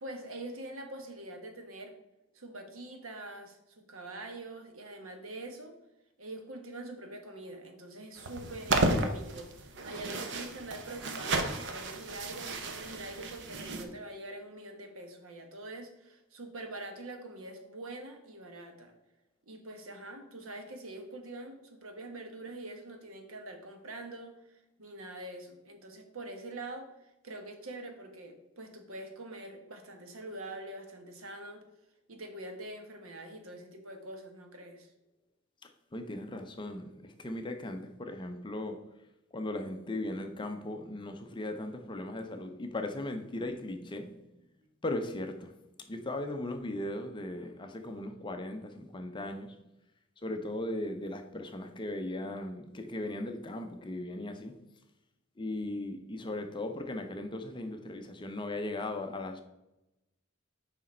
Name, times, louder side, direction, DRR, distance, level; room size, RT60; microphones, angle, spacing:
voice 1, 0.0-1.9 2.3-5.8 6.2-18.9 19.5-31.6 32.1-34.9, right 2 dB, 70° right, 4 dB, 1.1 m, -44 dB
sound 1, 8.2-13.8, right 2 dB, 55° right, 0.7 m, -33 dB
voice 2, 35.9-38.8 39.3-44.2 44.8-45.6 45.9-49.6 50.2-54.6 55.4-59.4, left 1 dB, 20° left, 6 dB, 0.5 m, -37 dB
6.2 x 5.1 x 4.3 m, 0.91 s
head